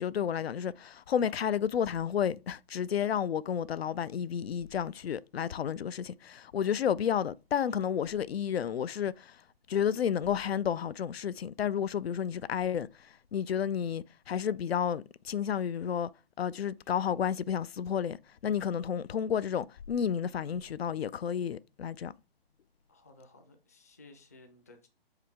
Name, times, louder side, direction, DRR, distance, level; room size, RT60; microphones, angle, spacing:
voice 1, 0.0-9.4 9.7-16.1 16.4-18.2 18.4-22.1, left 8 dB, 90° left, 0.5 m, -31 dB
voice 2, 22.9-24.9, left 2 dB, 15° left, 0.5 m, -56 dB
6.4 x 4.9 x 3.4 m
hypercardioid pair, 165°, 30 cm